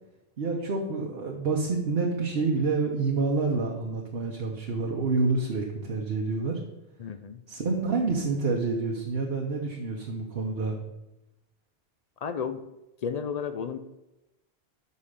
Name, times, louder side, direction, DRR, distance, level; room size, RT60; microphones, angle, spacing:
voice 1, 0.4-6.6 7.5-10.8, right 3 dB, 70° right, 0 dB, 1.1 m, -28 dB
voice 2, 7.0-7.4 12.2-12.6 13.0-13.8, left 7 dB, 55° left, 11 dB, 0.5 m, -32 dB
5.5 x 5.5 x 6.5 m, 0.96 s
omnidirectional pair, 1.0 m